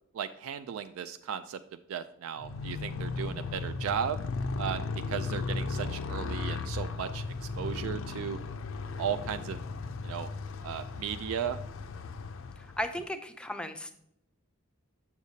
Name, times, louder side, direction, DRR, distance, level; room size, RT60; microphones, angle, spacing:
voice 1, 0.1-1.6 1.9-4.2 4.6-4.8 5.1-7.3 7.6-8.4 9.0-9.6 10.0-10.3 10.6-11.6, right 8 dB, 75° right, 10 dB, 0.3 m, -35 dB
Motorcycle, 2.4-13.0, left 3 dB, 65° left, 0.4 m, -36 dB
voice 2, 12.8-13.9, left 1 dB, 5° left, 7 dB, 0.4 m, -35 dB
7.1 x 6.4 x 2.7 m, 0.76 s
head